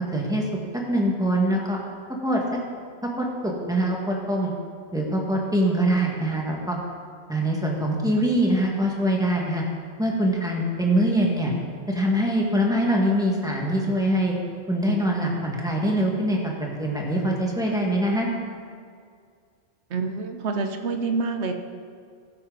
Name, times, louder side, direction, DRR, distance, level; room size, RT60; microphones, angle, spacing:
voice 1, 0.1-0.4 0.7-1.8 2.2-2.6 3.0-4.5 4.9-6.8 7.3-9.6 10.0-11.5 11.9-14.4 14.7-18.3, right 1 dB, 5° right, -2 dB, 1.7 m, -23 dB
voice 2, 19.9-21.5, right 4 dB, 80° right, 6 dB, 1.2 m, -27 dB
15.5 x 8.6 x 4.0 m, 2.1 s
omnidirectional pair, 1.1 m